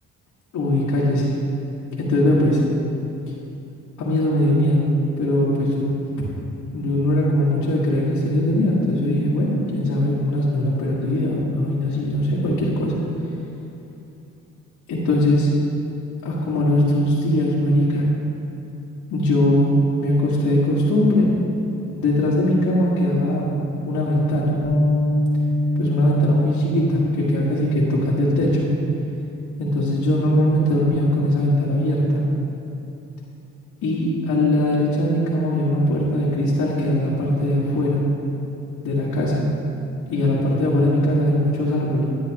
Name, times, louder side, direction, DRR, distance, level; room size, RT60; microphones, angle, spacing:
voice 1, 0.5-1.4 2.0-2.6 4.0-4.9 5.2-5.9 6.7-12.9 14.9-15.5 16.2-18.0 19.1-21.3 22.0-23.5 23.8-24.6 25.8-28.7 29.6-32.2 33.8-38.0 38.8-39.4 40.1-42.0, left 1 dB, 80° left, -8 dB, 1.7 m, -20 dB
Bass guitar, 24.6-30.9, left 1 dB, 25° left, 0.8 m, -25 dB
10.5 x 9.9 x 2.9 m, 2.8 s
cardioid pair, 90°, 30 cm